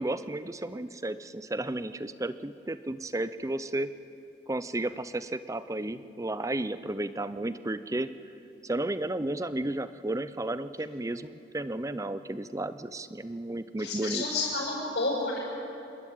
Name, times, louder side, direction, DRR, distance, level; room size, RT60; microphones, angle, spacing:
voice 1, 0.0-3.9 4.5-8.1 8.6-14.3, right 1 dB, 20° right, 14 dB, 0.6 m, -33 dB
voice 2, 13.8-15.4, left 3 dB, 65° left, -9 dB, 6.8 m, -30 dB
28.5 x 12.5 x 9.2 m, 2.8 s
head